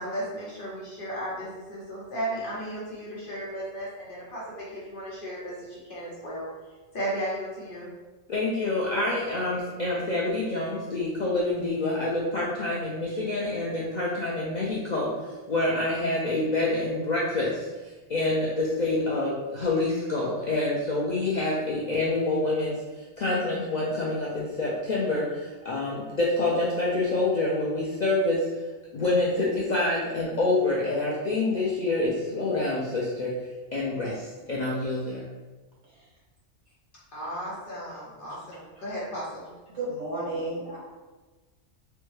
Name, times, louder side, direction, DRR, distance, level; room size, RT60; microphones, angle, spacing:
voice 1, 0.0-6.5 6.9-7.9 37.1-39.5, right 1 dB, 45° left, -6 dB, 0.9 m, -35 dB
voice 2, 8.3-22.8 23.2-28.4 28.9-33.4 33.7-35.2, left 2 dB, 90° left, -5 dB, 0.4 m, -27 dB
voice 3, 39.7-40.8, right 2 dB, 70° right, -7 dB, 1.7 m, -32 dB
3.4 x 2.2 x 3.1 m, 1.2 s
omnidirectional pair, 1.3 m